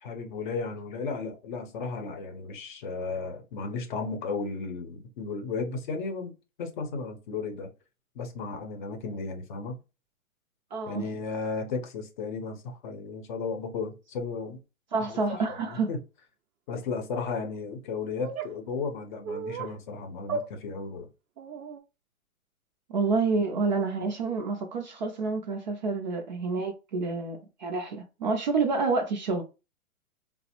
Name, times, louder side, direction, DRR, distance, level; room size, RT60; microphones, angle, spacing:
voice 1, 0.0-6.3 6.6-7.7 8.2-9.8 10.9-14.6 15.0-15.1 15.5-15.6 15.9-16.0 16.7-21.1, left 4 dB, 35° left, 0.7 m, -34 dB
voice 2, 10.7-11.1 14.9-15.9 22.9-29.4, right 4 dB, 35° right, 0.4 m, -28 dB
sound 1, 18.2-18.5 19.2-19.7 20.3-20.5 21.4-21.8, right 4 dB, 90° right, 0.6 m, -34 dB
3.2 x 2.0 x 2.9 m
hypercardioid pair, 135°, 42 cm